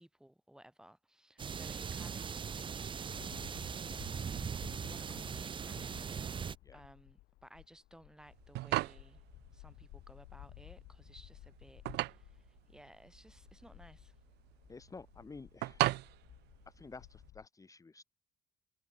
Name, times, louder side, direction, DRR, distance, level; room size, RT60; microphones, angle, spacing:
voice 1, 0.0-3.7 4.8-6.2 6.7-9.2 9.5-14.2, right 1 dB, 5° right, 8.0 m, -59 dB
sound 1, 1.4-6.6, right 6 dB, 30° right, 0.7 m, -40 dB
sound 2, 3.0-17.5, left 18 dB, 85° left, 6.2 m, -56 dB
sound 3, 8.3-17.3, right 19 dB, 80° right, 0.7 m, -38 dB
voice 2, 14.7-15.9 16.7-18.0, left 4 dB, 20° left, 1.5 m, -51 dB
cardioid pair, 110°, 17 cm